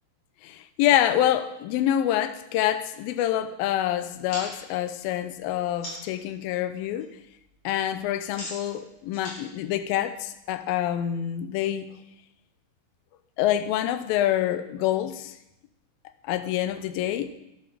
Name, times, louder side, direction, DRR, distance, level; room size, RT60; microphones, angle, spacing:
voice 1, 0.4-7.1 7.6-11.9 13.4-15.4 16.2-17.4, left 11 dB, 75° left, 10 dB, 2.3 m, -26 dB
sound 1, 4.3-6.2 6.6-7.0 7.3-10.6, left 1 dB, 40° left, 5.9 m, -42 dB
11.5 x 10.5 x 6.7 m, 0.85 s
omnidirectional pair, 4.8 m